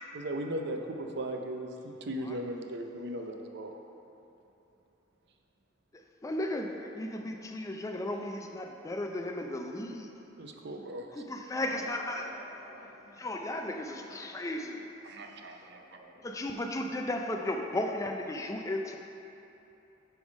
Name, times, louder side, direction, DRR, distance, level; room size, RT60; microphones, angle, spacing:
voice 1, 0.1-3.8 10.4-11.1 15.0-15.8, right 1 dB, 60° right, 4 dB, 0.6 m, -37 dB
voice 2, 6.2-10.1 11.1-12.3 13.2-14.9 16.2-19.0, left 1 dB, 15° left, 3 dB, 0.4 m, -35 dB
voice 3, 11.5-14.8 15.1-16.4, equal, 35° right, -11 dB, 1.0 m, -52 dB
8.0 x 3.5 x 5.3 m, 3.0 s
head